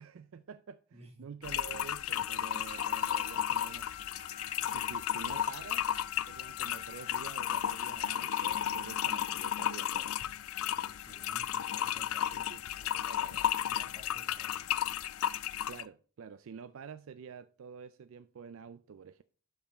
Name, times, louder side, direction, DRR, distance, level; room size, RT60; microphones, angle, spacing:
voice 1, 0.0-3.9 4.4-5.9 6.3-10.3 12.3-12.6 12.9-13.5 15.7-19.2, right 6 dB, 70° right, 0.4 m, -48 dB
voice 2, 0.9-1.4 10.6-13.0 13.6-14.8, right 2 dB, 30° right, 1.4 m, -56 dB
sound 1, 1.4-15.9, left 10 dB, 75° left, 0.4 m, -34 dB
Wind instrument woodwind instrument, 2.6-9.2, left 7 dB, 15° right, 1.1 m, -49 dB
6.7 x 5.6 x 3.9 m
head